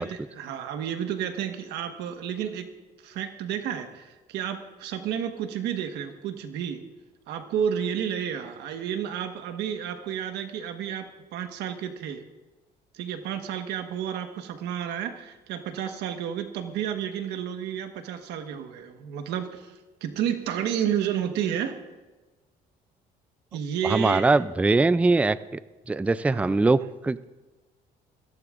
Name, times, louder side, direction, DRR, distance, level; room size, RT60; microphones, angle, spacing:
voice 1, 0.0-2.7 3.0-6.8 7.3-12.2 12.9-19.7 20.0-21.8 23.5-24.4 26.3-26.6, right 9 dB, 85° right, 7 dB, 1.3 m, -31 dB
voice 2, 23.8-25.6 25.9-27.2, right 3 dB, 10° right, 15 dB, 0.3 m, -22 dB
21.5 x 15.5 x 2.5 m, 1.2 s
cardioid pair, 110°, 17 cm